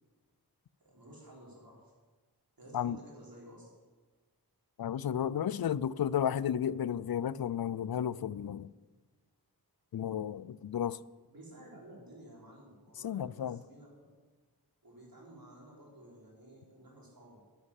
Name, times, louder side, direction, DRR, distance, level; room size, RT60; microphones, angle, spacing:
voice 1, 0.8-1.8 2.6-3.7 11.3-14.1 14.8-17.4, right 1 dB, 60° right, 4.9 m, -53 dB
voice 2, 4.8-8.7 9.9-11.0 13.0-13.6, left 9 dB, 65° left, 0.5 m, -33 dB
11.0 x 10.0 x 7.4 m
wide cardioid pair, 65°, 39 cm